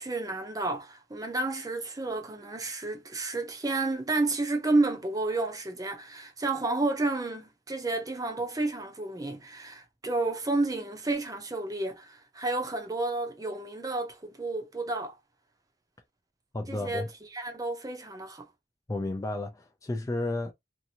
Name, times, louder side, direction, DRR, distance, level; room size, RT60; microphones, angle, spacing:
voice 1, 0.0-15.2 16.7-17.1 17.3-18.5, right 2 dB, 20° right, 0.6 m, -31 dB
voice 2, 16.5-17.1 18.9-20.5, left 2 dB, 20° left, 0.3 m, -32 dB
2.8 x 2.5 x 2.7 m
head